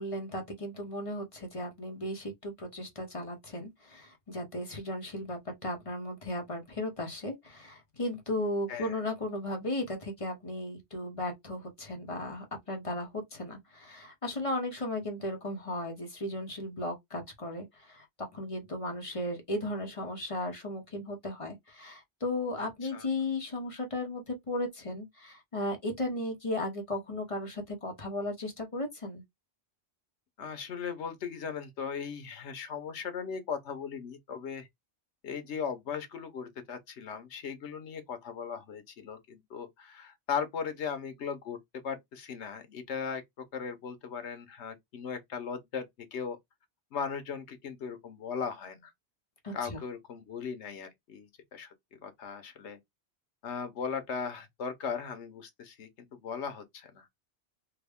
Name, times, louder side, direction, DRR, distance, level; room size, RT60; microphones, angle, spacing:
voice 1, 0.0-29.2 49.4-49.8, left 1 dB, 30° left, 0.9 m, -36 dB
voice 2, 8.7-9.0 22.6-23.1 30.4-34.7 35.2-41.6 41.8-45.9 46.1-46.4 46.9-48.9 49.5-51.7 52.0-52.8 53.4-57.1, left 6 dB, 75° left, 1.1 m, -38 dB
3.5 x 2.1 x 3.5 m
omnidirectional pair, 1.2 m